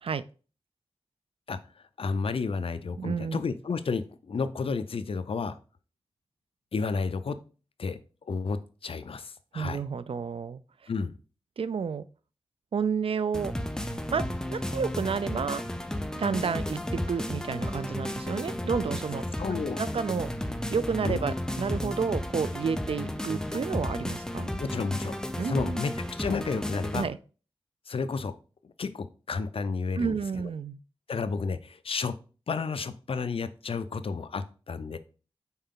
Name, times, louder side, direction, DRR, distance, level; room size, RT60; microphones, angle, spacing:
voice 1, 2.0-5.6 6.7-7.4 7.8-8.0 8.3-9.8 10.9-11.1 19.4-19.8 21.0-21.2 24.6-25.2 25.4-27.1 27.9-28.4 28.8-30.2 31.1-32.2 32.5-35.0, left 4 dB, 70° left, 0.5 m, -31 dB
voice 2, 3.0-3.4 9.5-10.6 11.6-12.0 12.7-13.5 14.1-15.6 16.1-19.2 19.8-20.3 20.7-24.5 25.4-25.8 26.9-27.2 30.0-30.8, right 6 dB, 70° right, 0.4 m, -30 dB
sound 1, 13.3-27.0, left 1 dB, 5° left, 0.6 m, -33 dB
5.6 x 4.5 x 3.7 m
wide cardioid pair, 80°, 10 cm